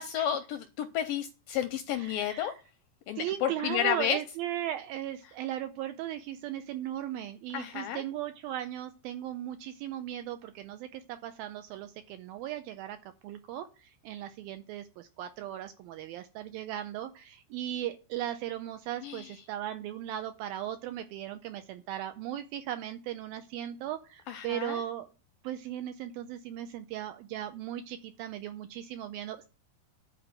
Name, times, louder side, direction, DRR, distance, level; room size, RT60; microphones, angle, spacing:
voice 1, 0.0-2.5 3.1-4.2 7.5-8.0 19.0-19.3 24.3-24.8, left 10 dB, 80° left, 7 dB, 2.0 m, -31 dB
voice 2, 1.9-2.5 3.2-13.0 13.2-25.1 25.4-29.5, right 12 dB, 80° right, 9 dB, 2.2 m, -37 dB
11.0 x 4.5 x 7.8 m, 0.33 s
omnidirectional pair, 4.7 m